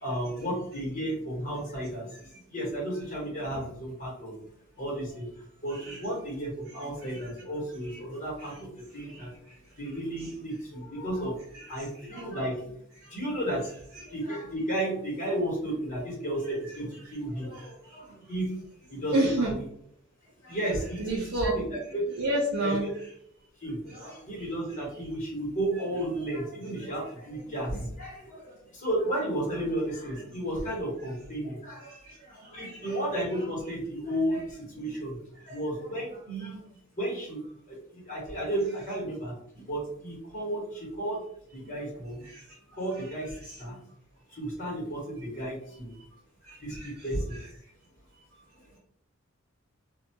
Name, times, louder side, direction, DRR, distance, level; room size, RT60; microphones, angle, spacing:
voice 1, 0.0-4.4 4.8-5.3 5.6-9.3 9.8-11.4 11.7-12.8 13.1-19.5 20.4-22.0 22.6-22.9 23.6-35.2 35.4-36.6 36.9-37.4 37.7-41.3 41.5-42.2 42.7-43.8 44.3-45.9 46.6-47.4 48.6-48.7, right 1 dB, 40° left, -4 dB, 1.3 m, -33 dB
voice 2, 19.1-19.5 20.5-20.6 21.0-21.6 22.2-22.9 32.6-32.9 46.7-46.9 47.3-47.4, right 1 dB, 75° right, -1 dB, 0.5 m, -28 dB
2.6 x 2.3 x 2.8 m, 0.67 s
head